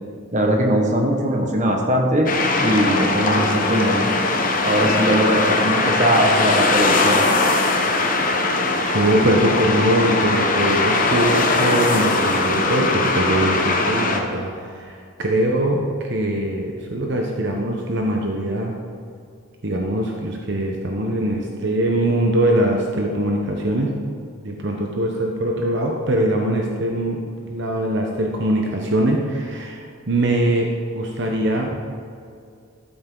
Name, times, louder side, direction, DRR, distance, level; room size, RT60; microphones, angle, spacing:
voice 1, 0.3-2.3 2.6-4.1 4.6-7.2, right 1 dB, 35° right, 1 dB, 1.3 m, -20 dB
sound 1, 2.3-14.2, left 3 dB, 40° left, 0.9 m, -20 dB
voice 2, 8.9-15.8 16.1-18.7 19.6-23.9 24.4-31.8, right 1 dB, 55° right, 0 dB, 1.0 m, -22 dB
13.5 x 8.1 x 3.9 m, 2.3 s
head